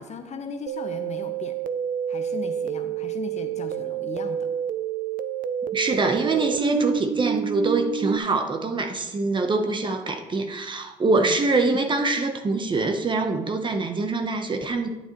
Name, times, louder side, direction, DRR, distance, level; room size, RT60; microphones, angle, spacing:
voice 1, 0.0-1.6 2.1-4.5 11.1-11.4, left 5 dB, 40° left, 7 dB, 1.0 m, -37 dB
sound 1, 0.7-8.2, right 9 dB, 55° right, 0.5 m, -29 dB
voice 2, 5.7-14.9, right 3 dB, 30° right, 6 dB, 0.9 m, -24 dB
11.0 x 9.2 x 3.0 m, 1.1 s
cardioid pair, 110°, 17 cm